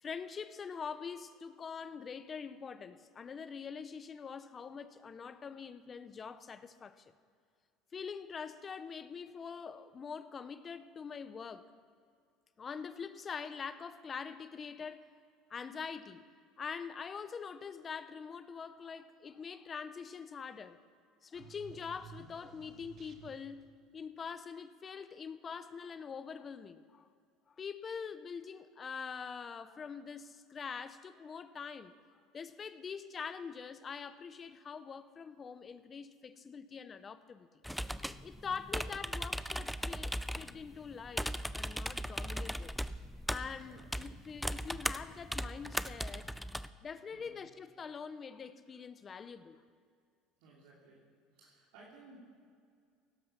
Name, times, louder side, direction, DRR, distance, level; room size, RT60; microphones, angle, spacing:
voice 1, 0.0-7.1 7.9-11.7 12.6-15.1 15.5-16.3 16.6-20.8 21.2-23.6 23.9-27.1 27.5-31.9 32.3-37.8 38.2-42.7 43.3-46.3 46.8-49.6, left 6 dB, 35° left, 13 dB, 0.8 m, -44 dB
sound 1, 21.3-23.7, right 6 dB, 50° right, 1.4 m, -54 dB
sound 2, 37.6-46.7, equal, ahead, 0.5 m, -38 dB
voice 2, 38.6-39.2 42.2-42.5 43.6-44.0 47.1-47.4 50.4-51.0 51.3-52.2, right 3 dB, 80° right, -5 dB, 3.2 m, -59 dB
17.0 x 11.0 x 5.8 m, 2.2 s
supercardioid pair, 95°, 0 cm